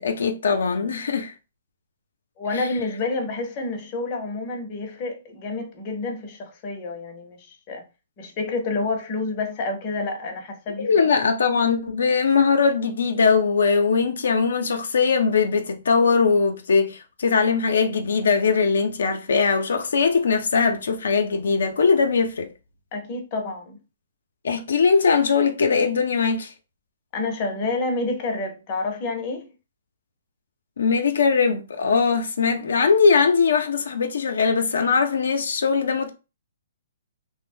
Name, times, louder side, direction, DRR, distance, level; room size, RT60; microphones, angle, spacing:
voice 1, 0.0-1.3 2.5-2.7 10.8-22.5 24.4-26.5 30.8-36.1, left 5 dB, 75° left, 0.5 m, -20 dB
voice 2, 2.4-7.8 8.2-11.1 22.9-23.8 27.1-29.5, left 3 dB, 35° left, 0.7 m, -29 dB
2.5 x 2.0 x 3.3 m
hypercardioid pair, 145°, 0 cm